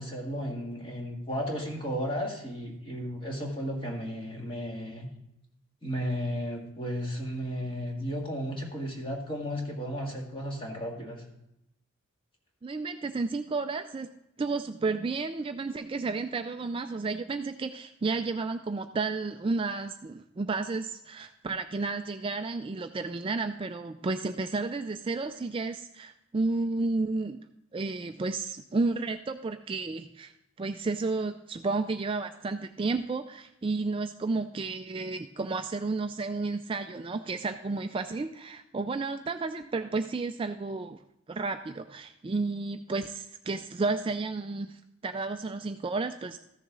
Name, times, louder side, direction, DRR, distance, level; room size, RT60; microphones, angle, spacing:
voice 1, 0.0-5.1 5.8-11.2, equal, 25° left, 0 dB, 1.8 m, -34 dB
voice 2, 12.6-14.1 14.4-27.4 27.7-30.3 30.6-41.0 41.3-46.4, right 3 dB, 25° right, 7 dB, 0.3 m, -32 dB
14.0 x 7.0 x 3.8 m, 0.84 s
head